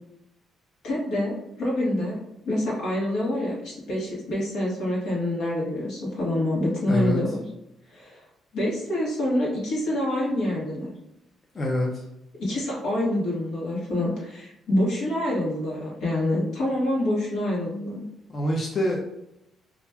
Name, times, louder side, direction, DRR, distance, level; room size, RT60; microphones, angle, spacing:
voice 1, 0.8-2.2 2.4-7.4 7.9-8.2 8.5-10.9 12.4-18.0, left 1 dB, 80° left, -4 dB, 1.1 m, -26 dB
voice 2, 6.9-7.2 11.5-12.0 18.3-19.0, equal, 40° left, -2 dB, 0.5 m, -25 dB
3.1 x 2.4 x 2.2 m, 0.82 s
cardioid pair, 90°, 0 cm